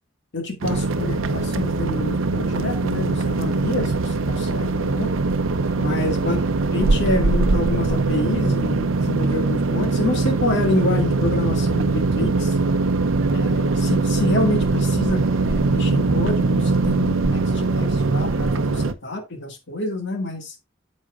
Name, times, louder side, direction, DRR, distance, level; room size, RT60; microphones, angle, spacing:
voice 1, 0.3-5.1 5.8-6.4 6.7-12.5 13.3-20.5, left 2 dB, 65° left, 2.0 m, -27 dB
sound 1, 0.6-18.9, right 3 dB, 90° right, 0.7 m, -21 dB
9.9 x 7.4 x 2.4 m
head